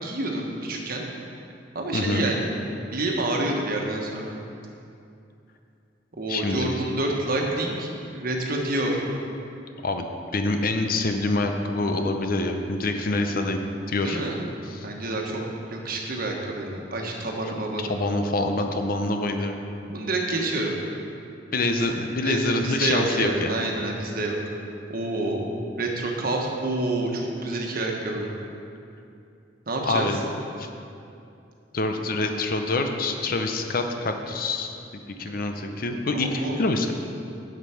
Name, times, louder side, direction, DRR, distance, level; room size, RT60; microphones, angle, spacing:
voice 1, 0.0-1.0 1.7-2.5 2.9-4.4 6.2-9.0 14.0-14.4 14.8-15.4 15.7-17.9 19.9-20.8 21.5-21.7 22.2-24.3 24.9-25.5 25.8-28.3 29.7-30.1 35.2-35.3 36.1-36.6, right 2 dB, 55° right, 0 dB, 1.3 m, -28 dB
voice 2, 1.9-2.3 6.3-6.8 9.8-10.1 10.3-13.6 13.9-14.2 14.6-14.9 17.5-17.6 17.9-19.6 21.5-23.5 29.9-30.2 30.6-30.7 31.7-36.9, left 2 dB, 50° left, 5 dB, 0.7 m, -26 dB
8.0 x 7.4 x 5.8 m, 2.6 s
head